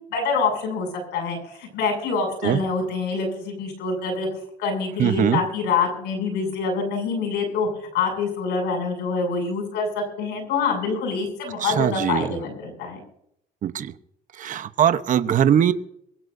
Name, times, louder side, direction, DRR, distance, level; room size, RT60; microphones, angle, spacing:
voice 1, 0.1-4.3 4.6-7.7 7.9-13.0, left 4 dB, 90° left, 4 dB, 7.3 m, -26 dB
voice 2, 5.0-5.4 11.6-12.4 13.6-13.9 14.4-15.7, right 9 dB, 50° right, 11 dB, 1.0 m, -21 dB
23.5 x 16.5 x 2.7 m, 0.72 s
cardioid pair, 110°, 17 cm